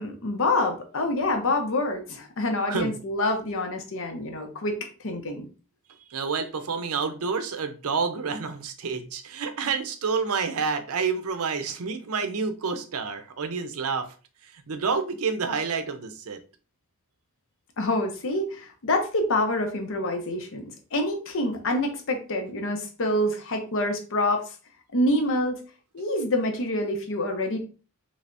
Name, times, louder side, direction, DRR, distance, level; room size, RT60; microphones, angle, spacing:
voice 1, 0.0-5.5 17.8-24.5 24.9-25.6 25.9-27.6, left 1 dB, 60° left, 0.7 m, -27 dB
voice 2, 6.1-14.1 14.7-16.4, right 5 dB, 70° right, 0.5 m, -29 dB
3.3 x 3.2 x 2.6 m
head